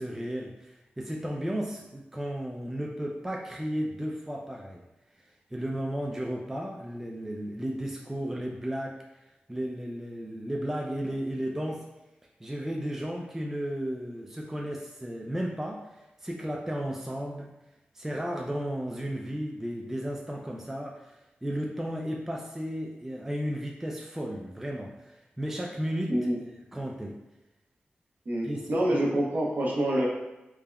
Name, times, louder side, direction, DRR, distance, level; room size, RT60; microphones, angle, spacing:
voice 1, 0.0-4.8 5.2-11.9 12.4-17.5 17.9-26.1 26.7-27.2 28.4-28.6 28.9-29.0, equal, 10° right, -1 dB, 0.3 m, -34 dB
voice 2, 28.3-30.1, right 1 dB, 55° right, -3 dB, 0.7 m, -26 dB
3.4 x 2.1 x 2.2 m, 0.98 s
cardioid pair, 70°, 4 cm